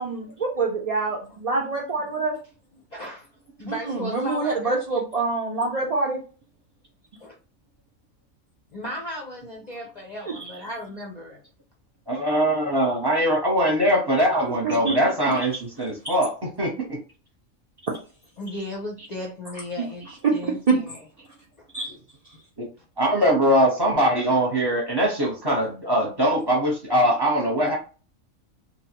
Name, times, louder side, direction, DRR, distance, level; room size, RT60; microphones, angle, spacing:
voice 1, 0.0-2.4 3.7-6.2 14.6-15.0 15.3-15.4 16.0-16.2 20.2-20.3 20.7-20.8 21.7-21.9, right 3 dB, 70° right, -2 dB, 0.3 m, -25 dB
voice 2, 2.7-3.3 3.6-4.8 7.2-7.3 8.7-11.4 18.4-21.0 21.6-21.7, left 1 dB, 50° left, -1 dB, 0.5 m, -36 dB
voice 3, 12.1-16.3 16.6-17.0 22.6-22.7 23.0-27.8, equal, 20° right, -2 dB, 0.8 m, -22 dB
2.7 x 2.3 x 2.8 m, 0.36 s
omnidirectional pair, 1.4 m